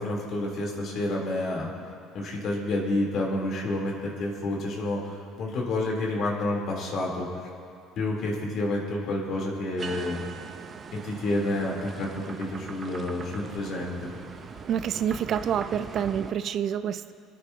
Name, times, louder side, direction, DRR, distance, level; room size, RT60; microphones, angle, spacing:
voice 1, 0.0-1.7 2.1-7.3 8.0-10.2 11.0-14.1, left 2 dB, 55° left, -2 dB, 3.4 m, -29 dB
sound 1, 9.8-16.3, right 5 dB, 35° right, 0.8 m, -41 dB
voice 2, 14.7-17.1, right 9 dB, 55° right, 13 dB, 0.4 m, -28 dB
28.0 x 9.5 x 2.8 m, 2.4 s
supercardioid pair, 85°, 0 cm